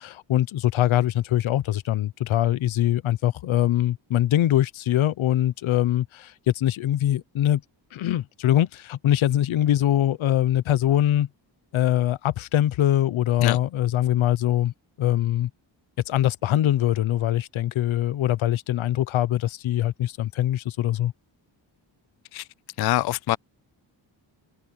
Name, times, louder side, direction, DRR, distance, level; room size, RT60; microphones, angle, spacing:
voice 1, 0.0-7.6 7.9-11.3 11.7-14.7 15.0-15.5 16.1-21.1, left 12 dB, 90° left, 0.9 m, -23 dB
voice 2, 22.8-23.4, left 15 dB, 55° left, 0.5 m, -24 dB
wide cardioid pair, 125°, 46 cm